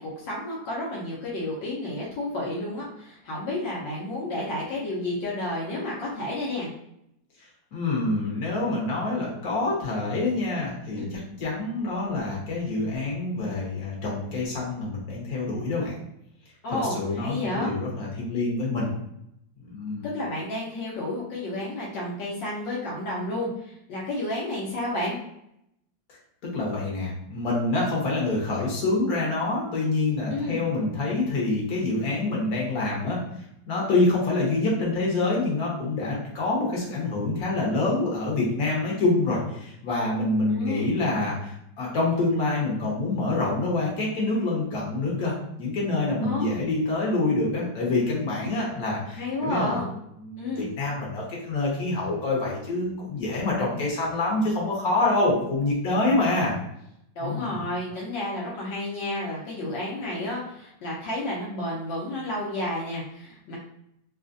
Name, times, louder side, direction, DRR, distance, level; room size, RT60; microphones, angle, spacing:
voice 1, 0.0-6.7 11.0-11.1 16.6-17.7 20.0-25.2 30.3-30.6 40.5-40.9 46.2-46.6 49.1-49.9 50.4-50.6 57.2-63.6, left 1 dB, 75° left, -5 dB, 1.4 m, -31 dB
voice 2, 7.7-15.9 16.7-18.9 19.6-20.1 26.5-33.2 33.7-49.8 50.2-56.5 57.2-57.6, left 2 dB, 55° left, -4 dB, 1.4 m, -26 dB
3.6 x 2.4 x 2.5 m, 0.78 s
omnidirectional pair, 2.0 m